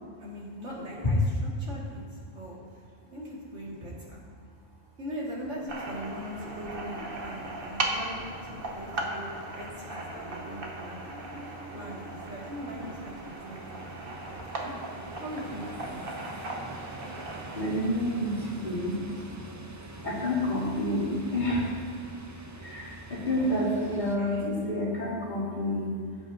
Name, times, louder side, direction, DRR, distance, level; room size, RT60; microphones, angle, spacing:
voice 1, 0.2-1.2 1.6-2.0 2.3-2.6 3.1-4.2 5.0-11.0 11.4-14.7 15.2-16.1 23.4-23.5 23.9-24.5, equal, 75° right, -5 dB, 2.5 m, -41 dB
voice 2, 4.0-4.4 6.5-6.6 7.0-7.9 8.4-8.8 10.0-10.1 10.5-11.7 12.2-12.4 13.0-14.6 15.9-21.8 22.1-26.3, left 1 dB, 40° left, -6 dB, 2.2 m, -32 dB
sound 1, 5.7-17.6, right 2 dB, 50° right, 1.2 m, -37 dB
sound 2, 7.1-24.2, right 2 dB, 25° right, 0.3 m, -46 dB
17.0 x 8.0 x 2.7 m, 2.1 s
omnidirectional pair, 1.2 m